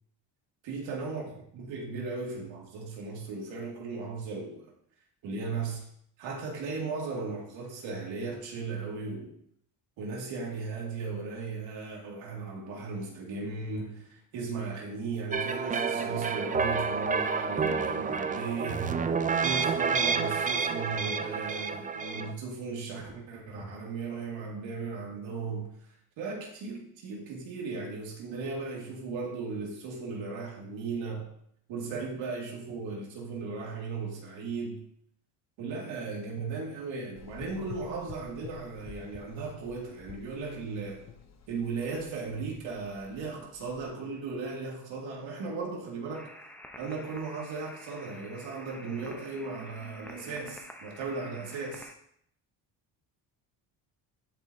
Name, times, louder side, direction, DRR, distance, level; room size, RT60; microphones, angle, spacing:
voice 1, 0.6-1.2 1.5-4.7 5.2-5.9 6.2-9.3 10.0-19.0 19.4-25.7 26.2-31.3 31.7-34.8 35.6-41.0 41.5-46.3 46.8-51.9, right 4 dB, 90° right, -2 dB, 2.2 m, -36 dB
sound 1, 15.3-22.3, right 5 dB, 20° right, 0.3 m, -29 dB
Gurgling / Engine, 37.2-43.9, left 7 dB, 35° left, 0.8 m, -49 dB
sound 2, 46.1-51.9, left 1 dB, 5° left, 0.7 m, -49 dB
11.0 x 4.8 x 2.7 m, 0.69 s
cardioid pair, 105°, 44 cm